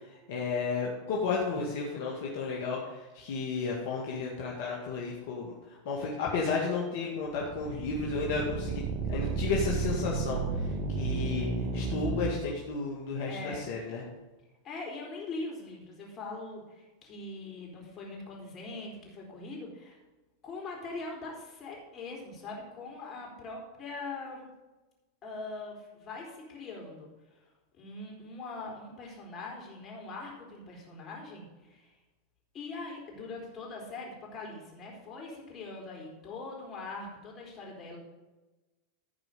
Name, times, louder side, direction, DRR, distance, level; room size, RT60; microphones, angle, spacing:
voice 1, 0.3-11.5 11.7-14.0, left 4 dB, 65° left, -2 dB, 2.0 m, -33 dB
sound 1, 7.3-12.3, right 4 dB, 50° right, 1.6 m, -32 dB
voice 2, 13.3-13.7 14.6-20.0 20.4-24.5 25.2-27.4 27.8-31.9 32.5-38.0, left 3 dB, 35° left, -1 dB, 4.1 m, -42 dB
15.0 x 5.0 x 5.3 m, 1.1 s
hypercardioid pair, 105°, 0 cm